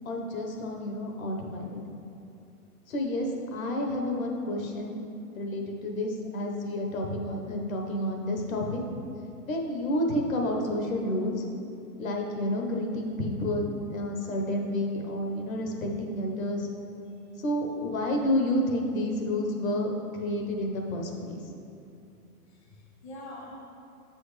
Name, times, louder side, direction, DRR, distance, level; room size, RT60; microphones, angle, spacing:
voice 1, 0.0-1.8 2.9-5.0 5.3-8.8 9.4-11.4 12.0-16.7 17.4-21.3, left 1 dB, 60° left, 1 dB, 1.2 m, -30 dB
voice 2, 22.5-23.6, left 1 dB, 45° left, -2 dB, 1.0 m, -45 dB
7.9 x 6.2 x 3.3 m, 2.7 s
hypercardioid pair, 165°, 46 cm